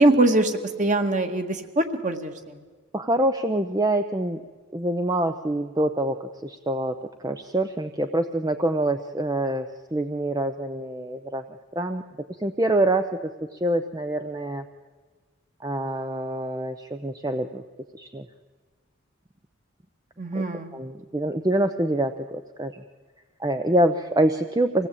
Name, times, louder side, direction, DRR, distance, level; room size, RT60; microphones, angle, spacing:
voice 1, 0.0-2.6 20.2-20.7, right 2 dB, 35° right, 6 dB, 1.8 m, -22 dB
voice 2, 2.9-4.4 4.7-7.0 7.2-11.4 11.7-12.0 12.4-13.2 13.5-14.6 15.6-17.6 17.9-18.3 20.3-20.4 20.7-22.8 23.4-24.9, right 1 dB, 20° right, 7 dB, 0.6 m, -25 dB
25.5 x 17.5 x 8.5 m, 1.4 s
head